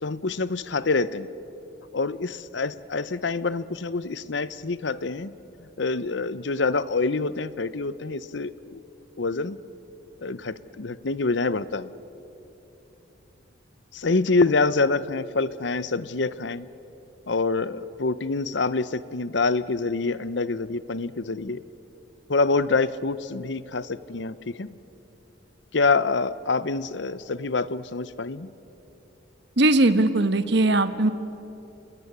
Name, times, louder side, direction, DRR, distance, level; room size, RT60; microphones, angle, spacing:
voice 1, 0.0-1.3 1.9-5.3 5.8-8.8 9.2-9.6 10.2-11.9 13.9-16.7 17.3-21.6 22.3-24.7 25.7-28.5, left 3 dB, 65° left, 16 dB, 0.8 m, -26 dB
voice 2, 29.6-31.1, right 2 dB, 60° right, 11 dB, 1.3 m, -19 dB
27.5 x 20.5 x 9.8 m, 3.0 s
head